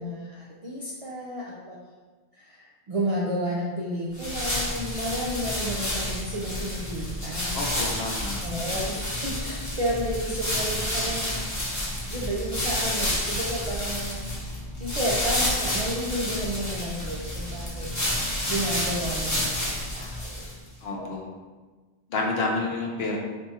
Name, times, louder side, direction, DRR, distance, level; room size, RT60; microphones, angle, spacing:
voice 1, 0.0-1.8 2.3-7.7 7.9-8.1 8.4-11.5 12.1-14.2 14.8-17.9 18.5-20.5 20.9-21.3, equal, 55° right, -5 dB, 0.4 m, -32 dB
sound 1, 4.1-20.7, left 1 dB, 20° left, 0.7 m, -30 dB
voice 2, 7.5-8.4 20.8-21.3 22.1-23.2, left 3 dB, 70° left, -1 dB, 0.8 m, -29 dB
2.7 x 2.4 x 3.9 m, 1.3 s
omnidirectional pair, 1.1 m